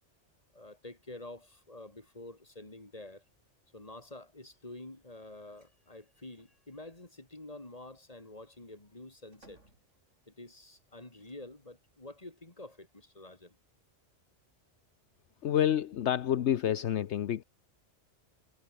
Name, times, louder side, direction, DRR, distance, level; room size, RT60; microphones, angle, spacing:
voice 1, 0.5-3.2 3.7-9.6 10.3-13.6, left 2 dB, 30° left, 3.5 m, -48 dB
sound 1, 5.5-5.8 6.1-6.6 8.0-10.4 11.2-11.9, right 2 dB, 85° right, 7.0 m, -65 dB
voice 2, 15.4-17.4, left 10 dB, 70° left, 1.1 m, -28 dB
omnidirectional pair, 1.2 m